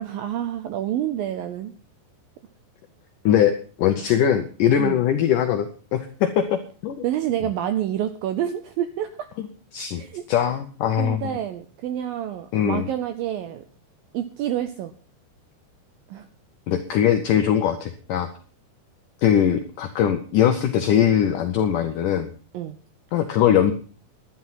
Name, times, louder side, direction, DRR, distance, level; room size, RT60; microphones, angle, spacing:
voice 1, 0.0-1.7 4.8-5.0 7.0-9.3 9.9-10.2 11.0-13.6 14.1-14.9 16.1-16.3 22.5-22.8, right 11 dB, 80° right, 10 dB, 2.1 m, -28 dB
voice 2, 3.3-7.0 9.7-10.0 10.3-11.3 12.5-12.9 16.7-18.3 19.2-22.3 23.1-23.7, left 9 dB, 80° left, 7 dB, 1.8 m, -21 dB
11.0 x 10.5 x 5.7 m, 0.39 s
omnidirectional pair, 4.9 m